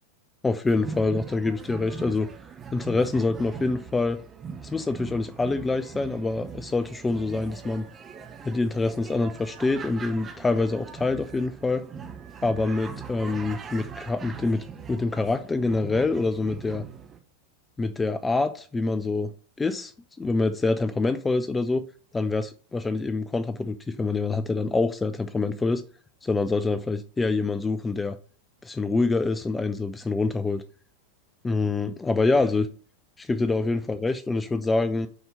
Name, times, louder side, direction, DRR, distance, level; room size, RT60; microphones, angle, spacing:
voice 1, 0.4-2.3 2.7-4.2 4.6-7.9 8.4-11.8 12.4-16.8 17.8-19.3 19.6-19.9 20.2-21.8 22.1-25.8 26.2-28.2 28.6-30.6 31.4-32.6 33.2-35.1, left 3 dB, 10° left, 12 dB, 0.4 m, -26 dB
sound 1, 0.7-17.2, right 6 dB, 20° right, 0.8 m, -41 dB
6.4 x 4.3 x 5.6 m, 0.41 s
figure-of-eight pair, 90°, 0 cm